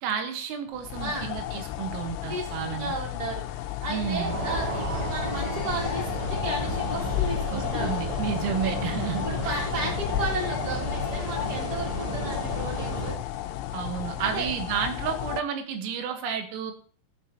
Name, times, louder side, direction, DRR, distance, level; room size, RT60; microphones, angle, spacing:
voice 1, 0.0-2.9 3.9-4.4 7.5-9.7 13.7-16.7, right 7 dB, 85° right, 6 dB, 3.9 m, -31 dB
sound 1, 0.7-15.4, left 13 dB, 85° left, 3.2 m, -33 dB
voice 2, 1.0-1.3 2.3-8.0 9.2-13.1 14.2-14.5, right 2 dB, 10° right, -2 dB, 1.9 m, -34 dB
sound 2, 3.9-10.1, right 3 dB, 50° right, 4.2 m, -40 dB
sound 3, 4.3-13.2, left 1 dB, 15° left, 1.1 m, -32 dB
18.5 x 7.5 x 2.9 m, 0.40 s
omnidirectional pair, 5.9 m